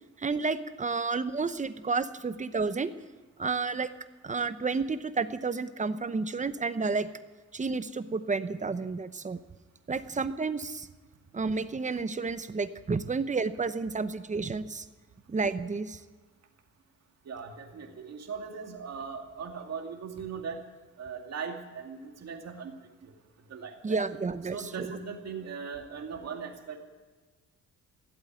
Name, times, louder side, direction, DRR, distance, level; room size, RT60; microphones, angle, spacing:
voice 1, 0.2-2.9 3.4-3.9 4.2-7.1 7.5-9.4 9.9-10.9 11.3-14.8 15.3-16.0 23.8-24.9, right 4 dB, 25° right, 12 dB, 0.9 m, -31 dB
voice 2, 17.3-20.6 21.0-22.7 23.5-24.0 24.5-26.8, right 6 dB, 60° right, 3 dB, 2.3 m, -39 dB
16.0 x 8.0 x 9.2 m, 1.3 s
cardioid pair, 90°, 30 cm